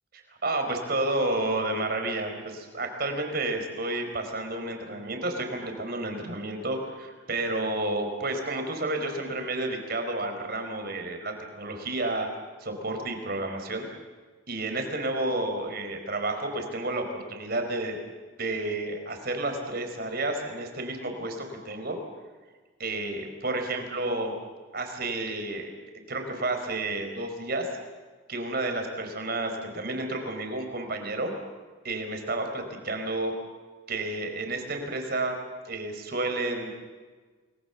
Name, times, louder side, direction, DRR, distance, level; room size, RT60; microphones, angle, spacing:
voice 1, 0.1-12.3 12.6-13.9 14.5-18.0 18.4-22.0 22.8-24.3 24.7-25.7 26.1-27.7 28.3-31.3 31.8-33.3 33.9-35.4 35.6-36.7, right 2 dB, 50° right, 5 dB, 4.6 m, -31 dB
29.0 x 21.5 x 7.2 m, 1.4 s
head